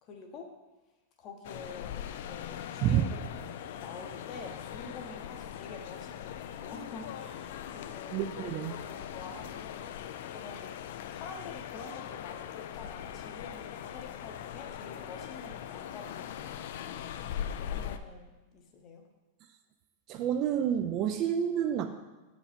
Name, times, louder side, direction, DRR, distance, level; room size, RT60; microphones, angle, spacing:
voice 1, 0.0-0.5 1.2-9.9 10.3-10.7 11.1-16.6 17.2-19.0, left 4 dB, 25° left, 4 dB, 0.8 m, -47 dB
sound 1, 1.4-18.0, left 10 dB, 55° left, 0.4 m, -41 dB
voice 2, 8.1-8.7 20.1-21.9, right 9 dB, 30° right, 7 dB, 0.3 m, -28 dB
6.7 x 5.0 x 5.1 m, 1.1 s
supercardioid pair, 175°, 0 cm